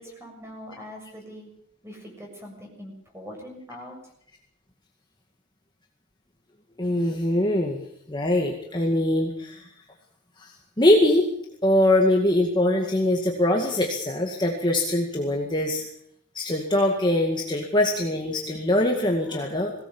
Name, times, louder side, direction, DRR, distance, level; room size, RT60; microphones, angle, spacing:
voice 1, 0.0-1.5 1.8-4.0, equal, 10° right, 1 dB, 6.9 m, -42 dB
voice 2, 6.8-7.8 8.1-9.6 10.4-10.5 10.8-11.3 11.6-15.8 16.3-19.7, left 1 dB, 20° left, 0 dB, 2.0 m, -22 dB
21.5 x 17.5 x 7.3 m, 0.70 s
head